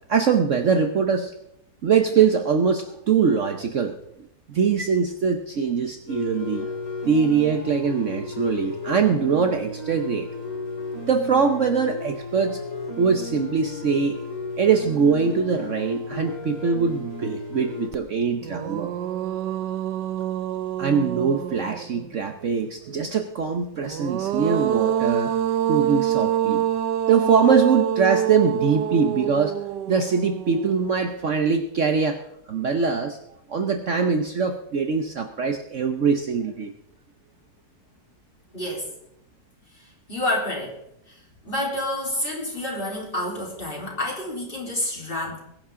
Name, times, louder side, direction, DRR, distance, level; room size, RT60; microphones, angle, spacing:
voice 1, 0.1-1.3 1.8-4.0 4.5-6.7 7.1-10.3 11.1-12.6 13.0-14.2 14.6-18.9 20.8-25.3 25.7-26.6 27.1-29.6 29.9-32.2 32.5-33.2 33.5-36.7, right 5 dB, 55° right, 6 dB, 1.1 m, -22 dB
sound 1, 6.1-17.9, left 3 dB, 85° left, 3.5 m, -34 dB
sound 2, 17.9-18.0 18.4-22.1 23.8-31.0, right 10 dB, 85° right, 1.4 m, -26 dB
voice 2, 38.5-38.9 39.7-40.8 41.1-45.4, left 1 dB, 30° left, -2 dB, 4.0 m, -29 dB
21.5 x 10.5 x 3.8 m, 0.77 s
omnidirectional pair, 1.8 m